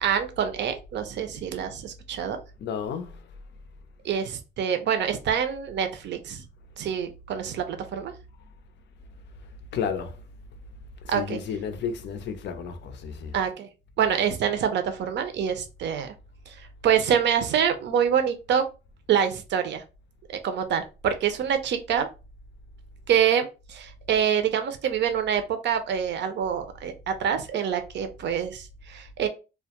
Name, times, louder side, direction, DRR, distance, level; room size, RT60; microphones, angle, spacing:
voice 1, 0.0-2.4 4.0-6.5 6.8-8.1 11.1-11.4 13.3-13.7 14.0-16.1 16.5-18.7 19.1-19.8 20.3-22.1 23.1-29.3, right 8 dB, 65° right, 0.5 m, -26 dB
voice 2, 2.6-3.2 9.7-10.2 11.0-13.3, left 7 dB, 65° left, 0.5 m, -32 dB
2.2 x 2.0 x 2.8 m
cardioid pair, 90°, 20 cm